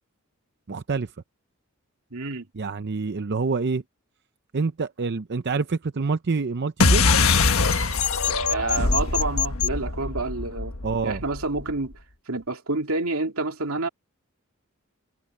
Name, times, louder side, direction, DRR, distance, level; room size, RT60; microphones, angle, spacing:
voice 1, 0.7-1.1 2.5-3.8 4.5-7.1 10.8-11.2, right 4 dB, 55° right, 0.6 m, -26 dB
voice 2, 2.1-2.5 8.5-10.8 11.0-11.9 12.3-13.9, right 3 dB, 85° right, 2.5 m, -28 dB
sound 1, 6.8-11.7, left 4 dB, 80° left, 1.4 m, -22 dB
head